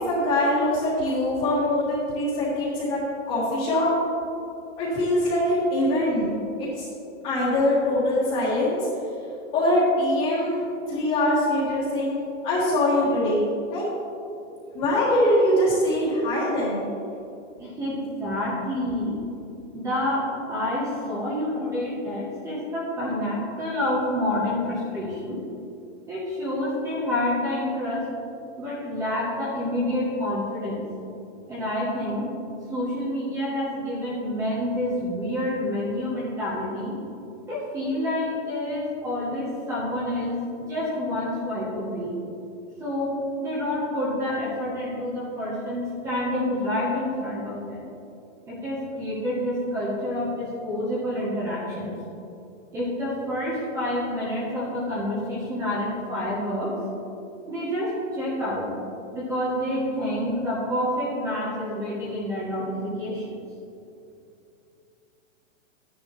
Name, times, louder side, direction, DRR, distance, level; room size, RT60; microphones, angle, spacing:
voice 1, 0.1-3.0 3.3-3.9 4.8-6.3 6.6-6.8 7.2-8.8 9.5-13.8 14.7-16.8, left 1 dB, 20° left, -10 dB, 1.6 m, -23 dB
voice 2, 17.6-19.2 19.7-25.4 26.1-28.1 28.6-30.8 31.5-32.3 32.7-36.9 37.4-42.1 42.8-47.8 48.5-51.9 52.7-56.8 57.5-58.7 59.1-63.3, left 1 dB, 10° right, -7 dB, 0.8 m, -28 dB
12.0 x 10.0 x 3.0 m, 2.6 s
supercardioid pair, 175°, 38 cm